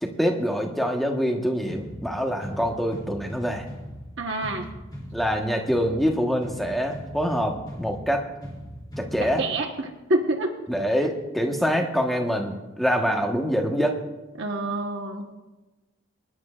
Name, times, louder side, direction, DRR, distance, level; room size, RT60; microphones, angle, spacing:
voice 1, 0.0-3.7 5.1-8.2 9.0-9.4 10.7-14.0, equal, ahead, 1 dB, 1.2 m, -25 dB
sound 1, 1.7-9.7, equal, 20° left, 2.9 m, -40 dB
voice 2, 4.2-4.7 9.2-10.5 14.4-15.3, right 2 dB, 55° right, 1 dB, 1.2 m, -27 dB
24.5 x 11.0 x 2.5 m, 1.1 s
head